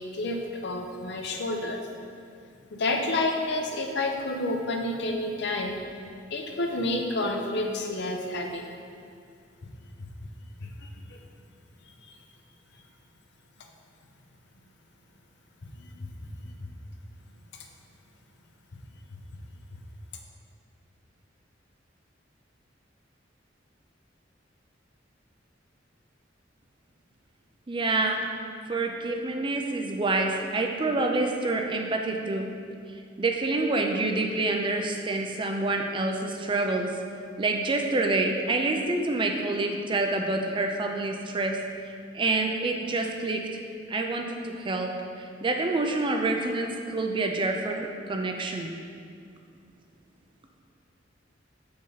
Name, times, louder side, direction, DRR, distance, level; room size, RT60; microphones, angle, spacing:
voice 1, 0.0-1.8 2.7-5.8 6.3-8.6 10.6-11.2 15.8-16.1 16.5-16.6, left 2 dB, 65° left, 2 dB, 0.8 m, -30 dB
voice 2, 27.7-28.3 28.7-32.5 33.2-37.0 37.4-41.6 42.1-43.5 43.9-48.7, right 2 dB, 25° right, 3 dB, 0.5 m, -27 dB
6.9 x 5.2 x 4.0 m, 2.3 s
head